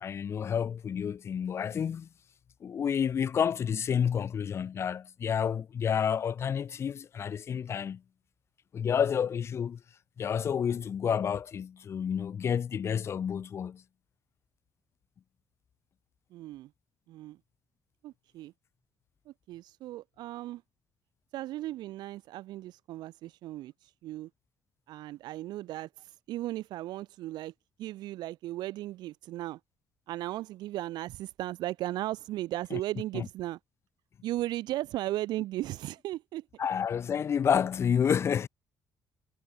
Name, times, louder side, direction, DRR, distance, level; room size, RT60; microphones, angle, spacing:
voice 1, 0.0-2.1 2.6-8.0 8.7-9.8 10.2-13.8 32.7-32.8 33.1-33.3 36.6-38.5, left 7 dB, 35° left, 0.6 m, -29 dB
voice 2, 16.3-16.7 17.1-17.4 18.0-18.5 19.3-20.6 21.3-24.3 24.9-27.5 27.8-29.6 30.1-33.6 34.2-36.5, right 15 dB, 85° right, 0.9 m, -36 dB
cardioid pair, 140°, 7 cm